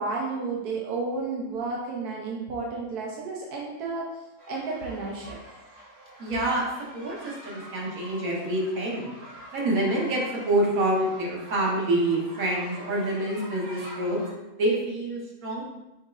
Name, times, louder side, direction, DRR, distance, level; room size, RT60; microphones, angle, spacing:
voice 1, 0.0-4.1 4.5-5.4, right 3 dB, 85° right, -2 dB, 1.2 m, -32 dB
sound 1, 4.4-14.3, right 1 dB, 35° right, 1.3 m, -46 dB
voice 2, 6.2-6.7 6.9-9.1 9.5-14.2 14.6-15.6, right 1 dB, 65° right, -3 dB, 1.5 m, -27 dB
6.0 x 3.7 x 2.4 m, 0.98 s
omnidirectional pair, 1.6 m